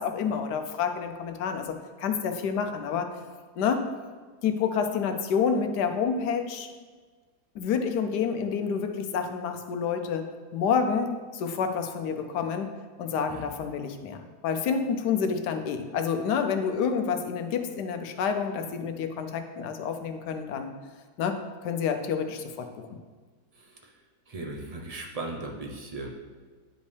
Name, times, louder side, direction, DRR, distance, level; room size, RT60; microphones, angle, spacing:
voice 1, 0.0-3.1 3.6-3.8 4.4-6.7 7.5-10.2 10.5-12.7 13.0-20.7 21.2-21.4 21.6-23.0, left 6 dB, 85° left, 6 dB, 1.3 m, -28 dB
voice 2, 23.5-24.0 24.3-26.1, right 2 dB, 50° right, 1 dB, 0.4 m, -38 dB
10.0 x 5.2 x 3.3 m, 1.4 s
omnidirectional pair, 1.7 m